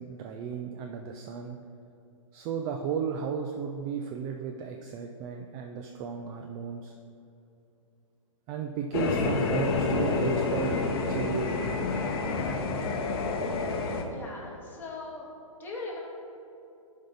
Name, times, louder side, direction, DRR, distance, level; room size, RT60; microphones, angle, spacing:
voice 1, 0.0-1.6 2.3-6.9 8.5-10.7 11.1-11.8, right 6 dB, 20° right, 4 dB, 0.4 m, -34 dB
sound 1, 8.9-14.0, left 4 dB, 45° left, 0.9 m, -28 dB
voice 2, 14.1-15.3 15.6-16.0, left 3 dB, 10° left, -5 dB, 1.9 m, -39 dB
11.0 x 5.2 x 4.1 m, 2.7 s
figure-of-eight pair, 125°, 17 cm